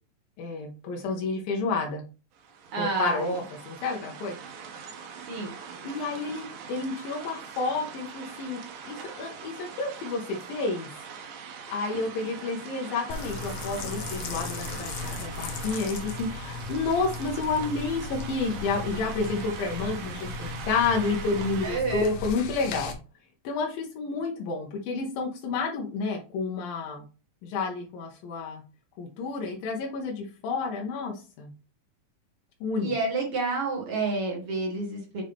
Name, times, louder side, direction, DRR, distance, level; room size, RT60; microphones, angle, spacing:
voice 1, 0.4-2.0 2.8-4.4 5.8-10.9 11.7-22.9 23.4-27.1 27.4-28.6 29.0-31.5 32.6-32.9, left 4 dB, 90° left, 0 dB, 2.7 m, -30 dB
sound 1, 2.3-21.8, right 6 dB, 80° right, 2.7 m, -42 dB
voice 2, 2.7-3.3 5.3-5.5 21.6-22.1 32.8-35.2, right 3 dB, 50° right, 0 dB, 2.1 m, -29 dB
sound 2, 13.1-22.9, left 3 dB, 70° left, 1.4 m, -37 dB
7.1 x 3.8 x 3.5 m, 0.34 s
omnidirectional pair, 4.0 m